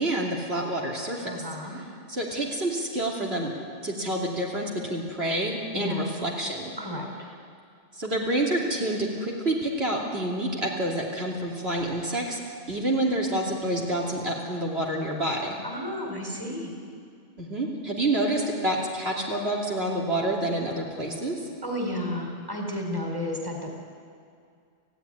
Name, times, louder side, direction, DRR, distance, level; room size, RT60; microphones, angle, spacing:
voice 1, 0.0-1.4 2.1-3.5 3.8-6.7 7.9-12.4 12.7-15.6 17.4-21.4, right 1 dB, 60° right, -3 dB, 3.3 m, -28 dB
voice 2, 1.2-1.8 5.7-6.0 6.8-7.1 15.6-16.7 21.6-23.7, left 1 dB, 20° right, 1 dB, 4.0 m, -32 dB
28.0 x 16.0 x 10.0 m, 2.4 s
omnidirectional pair, 1.2 m